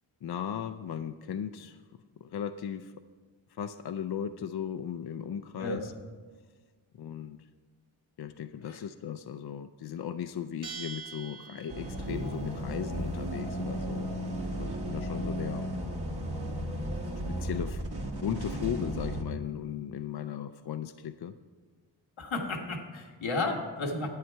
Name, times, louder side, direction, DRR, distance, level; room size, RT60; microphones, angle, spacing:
voice 1, 0.2-1.8 2.2-3.0 3.5-5.9 7.0-7.4 8.2-14.1 14.5-15.7 17.3-17.8 18.2-21.3, left 9 dB, 55° left, 10 dB, 0.5 m, -37 dB
Bell, 10.6-12.2, right 6 dB, 80° right, 2.5 m, -43 dB
sound 1, 11.7-19.2, right 1 dB, 55° right, 1.6 m, -34 dB
voice 2, 22.2-24.1, left 2 dB, 80° left, 2 dB, 1.4 m, -33 dB
10.5 x 8.3 x 4.5 m, 1.5 s
cardioid pair, 50°, 47 cm